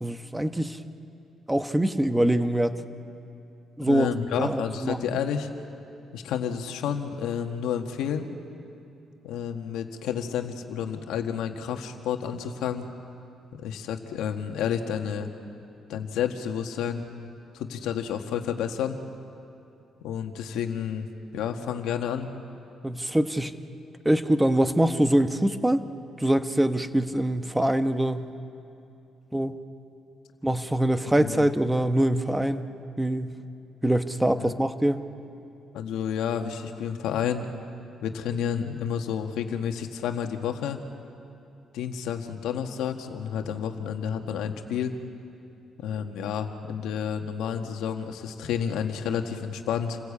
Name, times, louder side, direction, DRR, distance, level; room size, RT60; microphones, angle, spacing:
voice 1, 0.0-0.8 1.5-2.8 3.8-4.1 4.4-5.0 22.8-23.5 24.0-25.8 26.2-28.3 29.3-29.5 30.4-32.6 33.0-33.4 33.8-35.0, right 1 dB, 10° right, 9 dB, 1.1 m, -24 dB
voice 2, 3.9-5.5 6.1-8.3 9.2-12.9 13.5-15.3 15.9-17.0 17.5-19.0 20.0-21.1 21.3-22.3 31.2-31.5 34.4-34.6 35.7-37.5 38.0-40.8 41.7-45.0 45.8-50.0, left 8 dB, 90° left, 5 dB, 1.6 m, -30 dB
28.0 x 16.5 x 8.5 m, 2.7 s
cardioid pair, 90°, 0 cm